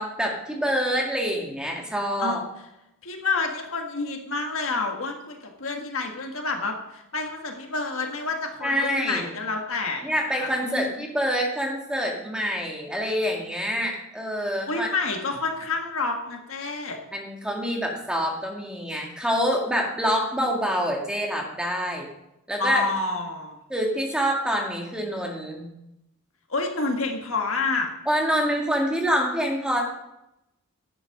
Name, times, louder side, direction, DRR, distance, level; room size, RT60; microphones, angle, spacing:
voice 1, 0.0-2.4 8.6-9.3 10.0-14.9 17.1-22.1 22.5-22.9 23.7-25.7 28.1-29.8, equal, 5° right, -1 dB, 1.9 m, -26 dB
voice 2, 3.0-11.0 14.7-17.0 22.6-23.6 26.5-27.9, left 3 dB, 65° left, 3 dB, 1.6 m, -29 dB
11.0 x 7.5 x 6.0 m, 0.86 s
head